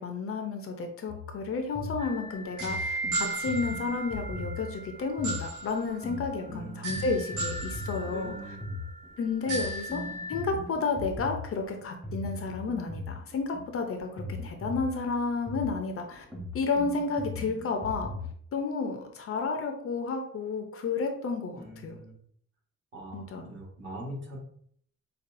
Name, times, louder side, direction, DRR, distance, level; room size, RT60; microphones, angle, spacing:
voice 1, 0.0-8.4 9.2-10.0 10.3-16.2 16.5-18.1 18.5-22.0 23.1-23.5, left 4 dB, 50° left, 5 dB, 0.5 m, -31 dB
sound 1, 1.1-18.3, left 2 dB, 5° right, 0.9 m, -39 dB
sound 2, 2.0-10.4, right 2 dB, 85° right, 1.5 m, -36 dB
voice 2, 6.5-7.0 8.0-8.8 21.5-22.1 22.9-24.4, right 1 dB, 40° right, -4 dB, 1.4 m, -42 dB
5.3 x 2.3 x 2.5 m, 0.63 s
cardioid pair, 150°, 29 cm